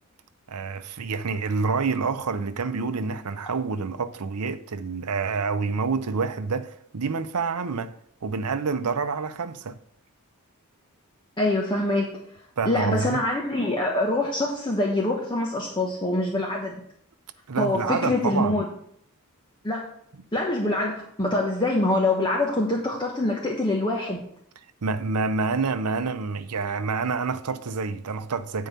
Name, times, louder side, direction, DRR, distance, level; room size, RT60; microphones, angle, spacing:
voice 1, 0.5-7.9 8.2-9.8 12.6-13.2 17.5-18.6 24.8-28.7, right 4 dB, 90° right, 0.7 m, -27 dB
voice 2, 11.4-12.1 12.7-16.8 17.6-18.7 19.6-19.9 20.3-24.2, left 2 dB, 20° left, 1.1 m, -25 dB
9.2 x 4.7 x 6.7 m
head